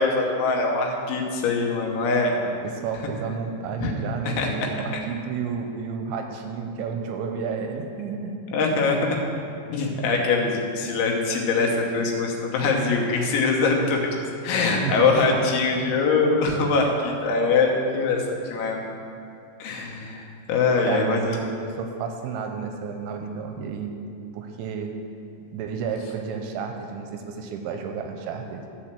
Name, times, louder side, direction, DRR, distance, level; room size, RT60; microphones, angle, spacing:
voice 1, 0.0-2.4 3.8-3.9 4.2-4.5 8.5-9.2 9.7-14.2 14.4-18.8 19.6-21.4, left 4 dB, 80° left, 0 dB, 3.4 m, -23 dB
voice 2, 2.6-8.4 14.8-15.1 20.9-23.9 24.3-24.9 25.5-28.6, right 6 dB, 85° right, 4 dB, 2.8 m, -31 dB
11.0 x 4.3 x 7.4 m, 2.5 s
omnidirectional pair, 5.4 m